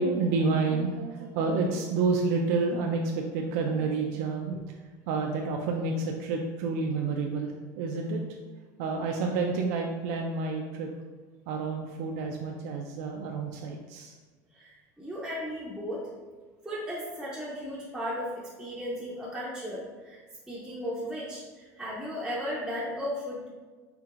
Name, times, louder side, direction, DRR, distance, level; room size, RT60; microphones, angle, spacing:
voice 1, 0.0-4.6 5.1-7.5 7.8-8.2 8.8-10.9 11.5-14.1, right 4 dB, 75° right, 2 dB, 0.4 m, -29 dB
voice 2, 14.5-16.0 16.6-20.2 20.5-23.5, equal, 5° right, -9 dB, 0.5 m, -35 dB
4.5 x 3.3 x 2.4 m, 1.4 s
cardioid pair, 165°, 8 cm